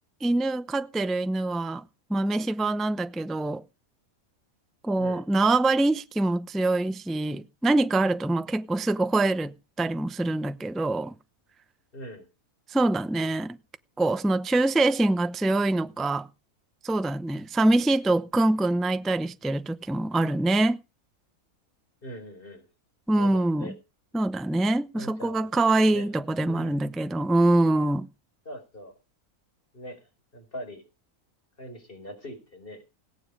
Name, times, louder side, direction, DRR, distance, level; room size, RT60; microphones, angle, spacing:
voice 1, 0.2-1.8 2.1-3.6 4.8-11.1 12.7-13.6 14.0-16.3 16.8-20.8 23.1-23.7 24.1-28.1, right 2 dB, ahead, 0.5 m, -24 dB
voice 2, 11.9-12.3 22.0-22.7 23.2-23.7 24.9-26.2 26.4-26.9 28.4-28.9 29.7-30.8 31.6-32.8, equal, 35° left, 4.7 m, -42 dB
18.0 x 9.4 x 5.0 m
omnidirectional pair, 1.5 m